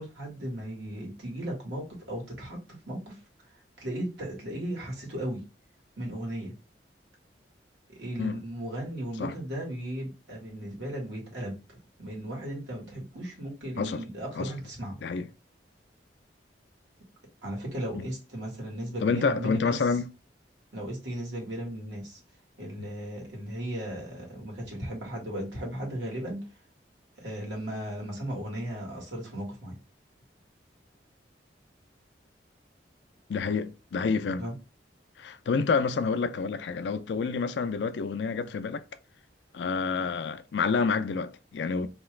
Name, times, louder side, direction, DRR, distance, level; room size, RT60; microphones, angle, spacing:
voice 1, 0.0-3.2 3.8-5.4 6.0-6.5 7.9-15.0 17.4-19.9 20.7-22.2 22.6-26.4 27.2-29.7 34.4-34.5, right 1 dB, 85° right, 1.6 m, -36 dB
voice 2, 19.0-20.1 33.3-34.5 35.2-38.8 39.5-41.9, left 5 dB, 75° left, 0.4 m, -28 dB
2.9 x 2.4 x 3.1 m
head